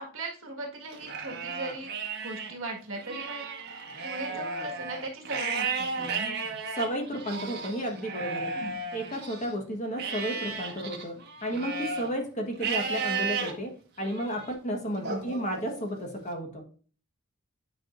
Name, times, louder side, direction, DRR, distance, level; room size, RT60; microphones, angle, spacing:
voice 1, 0.0-1.9 2.2-6.6 8.5-8.8 14.8-15.3, right 2 dB, 65° right, 1 dB, 1.7 m, -39 dB
Livestock farm animals working animals, 0.9-2.5 2.9-9.5 10.0-12.1 12.6-13.5 14.0-14.5 15.0-16.1, right 4 dB, 45° right, 1.2 m, -34 dB
voice 2, 6.8-8.5 8.9-11.2 11.4-16.7, equal, 30° left, 3 dB, 1.3 m, -32 dB
9.2 x 4.9 x 2.5 m, 0.41 s
head